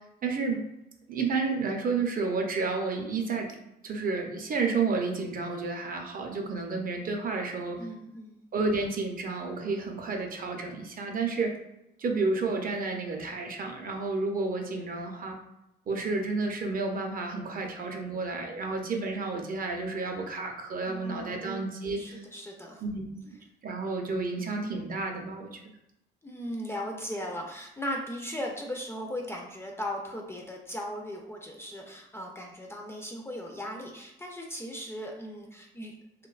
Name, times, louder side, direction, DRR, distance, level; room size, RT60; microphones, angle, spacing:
voice 1, 0.2-0.6 1.1-3.5 3.8-7.8 8.5-11.5 12.0-15.4 15.9-22.2 22.8-25.6, right 3 dB, 45° right, 3 dB, 0.5 m, -31 dB
voice 2, 7.8-8.4 20.9-21.6 22.0-22.8 26.2-35.9, equal, 15° left, 0 dB, 0.4 m, -37 dB
2.6 x 2.1 x 2.3 m, 0.85 s
cardioid pair, 90°, 20 cm